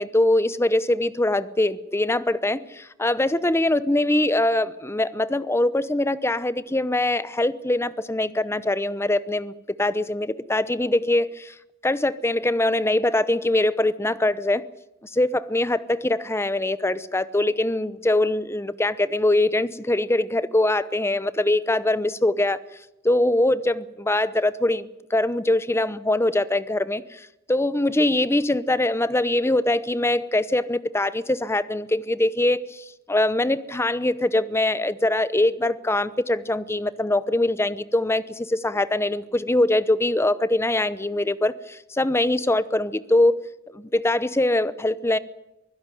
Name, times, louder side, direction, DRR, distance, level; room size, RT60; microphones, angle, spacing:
voice 1, 0.0-9.5 9.8-11.5 11.8-14.7 15.0-22.6 23.0-43.4 43.7-45.2, left 1 dB, 15° left, 0.8 m, -23 dB
24.0 x 16.0 x 9.2 m
head